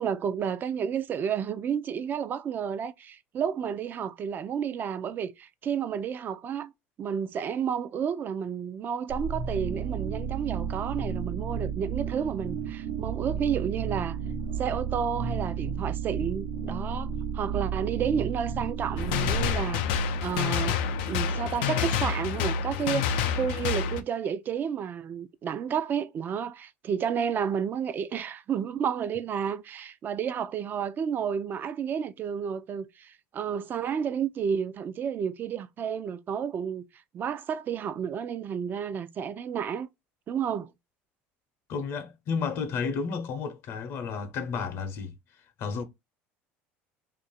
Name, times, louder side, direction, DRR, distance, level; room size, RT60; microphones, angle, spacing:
voice 1, 0.0-6.7 7.0-14.2 14.6-19.8 20.2-20.8 21.1-36.9 37.1-39.9 40.3-40.7, right 7 dB, 40° right, 0.5 m, -31 dB
sound 1, 9.1-20.9, right 6 dB, 85° right, 1.0 m, -33 dB
sound 2, 19.0-24.0, left 6 dB, 90° left, 0.5 m, -28 dB
voice 2, 41.7-45.1 45.6-45.8, left 5 dB, 60° left, 0.8 m, -32 dB
2.9 x 2.6 x 4.1 m
supercardioid pair, 105°, 5 cm